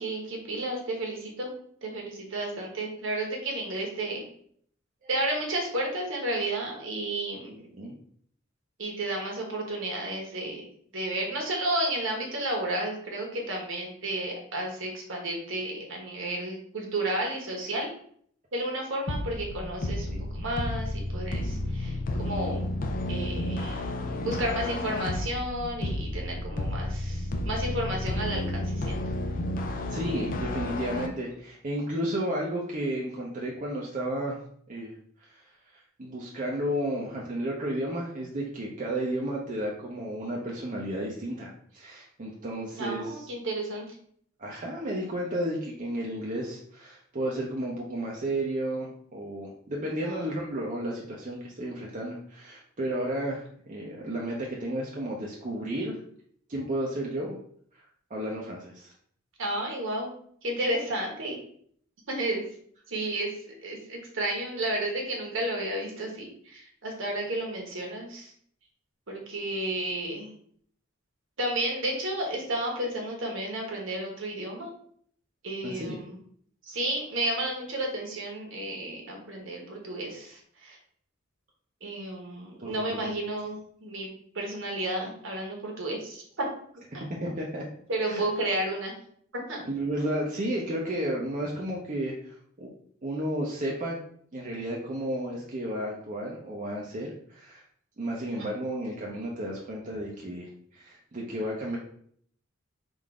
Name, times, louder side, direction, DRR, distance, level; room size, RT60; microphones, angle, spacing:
voice 1, 0.0-1.5 1.8-4.2 5.1-7.7 8.8-10.6 10.9-17.9 18.5-22.6 23.1-23.9 24.2-29.0 42.8-43.8 50.0-50.2 59.4-60.1 60.4-61.4 62.1-62.4 62.9-63.3 63.6-68.3 69.1-70.3 71.4-74.7 75.4-76.2 76.6-80.8 81.8-84.1 84.3-86.5 86.9-87.0 87.9-88.9 89.3-89.6 98.4-98.5, right 1 dB, 65° right, 1 dB, 1.3 m, -32 dB
sound 1, 19.1-31.1, left 1 dB, 40° left, 0.5 m, -31 dB
voice 2, 29.9-34.4 34.7-34.9 35.3-43.3 44.4-56.0 56.5-57.4 58.1-58.9 75.6-76.0 82.6-83.0 87.2-87.7 88.1-88.2 89.6-92.7 93.0-94.0 94.3-97.6 98.0-101.8, right 1 dB, 40° right, -3 dB, 0.7 m, -32 dB
3.8 x 2.6 x 4.7 m, 0.63 s
head